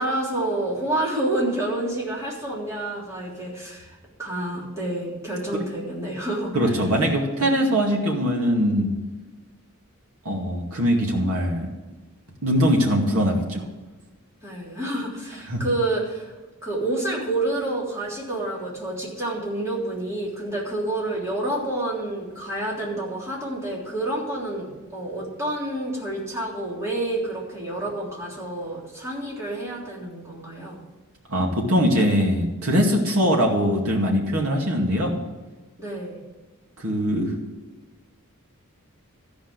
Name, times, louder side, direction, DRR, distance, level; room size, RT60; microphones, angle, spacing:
voice 1, 0.0-6.8 7.4-7.5 14.4-16.3 16.6-30.8 35.8-36.2, right 1 dB, 15° right, -5 dB, 3.3 m, -29 dB
voice 2, 6.5-8.9 10.2-11.7 12.4-13.7 15.5-15.6 31.3-35.2 36.8-37.3, equal, 90° right, -1 dB, 2.3 m, -22 dB
14.0 x 5.2 x 7.9 m, 1.2 s
head